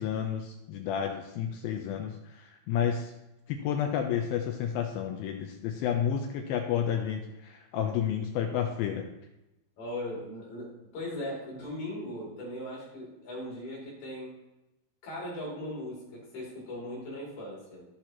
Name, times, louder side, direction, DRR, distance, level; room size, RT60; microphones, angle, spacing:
voice 1, 0.0-3.1 3.5-9.1, left 8 dB, 85° left, 4 dB, 2.2 m, -31 dB
voice 2, 9.8-14.4 15.0-17.9, left 1 dB, 60° left, -4 dB, 4.6 m, -39 dB
16.0 x 6.0 x 2.9 m, 0.95 s
omnidirectional pair, 4.8 m